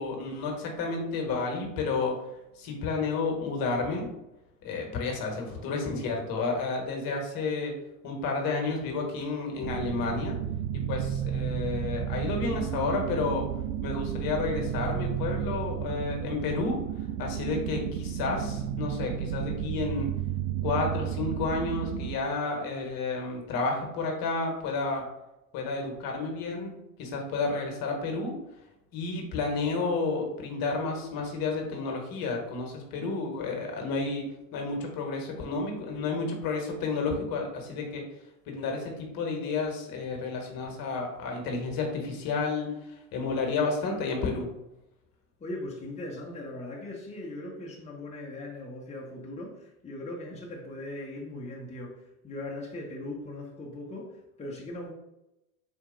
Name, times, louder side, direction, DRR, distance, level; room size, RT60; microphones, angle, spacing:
voice 1, 0.0-2.2 2.6-4.1 4.6-7.7 8.0-10.4 10.7-13.5 13.8-16.8 17.2-20.1 20.6-25.1 25.5-28.4 28.9-34.3 34.5-38.0 38.5-42.7 43.1-44.5, left 3 dB, 50° left, 1 dB, 1.3 m, -31 dB
sound 1, 9.6-22.2, right 10 dB, 55° right, 0.5 m, -32 dB
voice 2, 45.4-54.9, left 1 dB, 15° left, -3 dB, 1.0 m, -39 dB
4.2 x 2.6 x 3.8 m, 0.90 s
hypercardioid pair, 80°, 46 cm